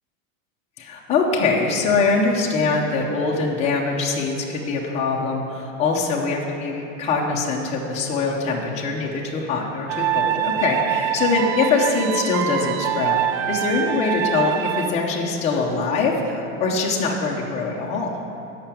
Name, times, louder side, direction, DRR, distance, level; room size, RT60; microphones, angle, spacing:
voice 1, 0.8-13.2 13.5-18.1, left 4 dB, 15° left, -3 dB, 0.7 m, -23 dB
sound 1, 9.9-14.9, right 10 dB, 60° right, 0.6 m, -24 dB
8.4 x 5.8 x 7.4 m, 2.9 s
supercardioid pair, 160°, 39 cm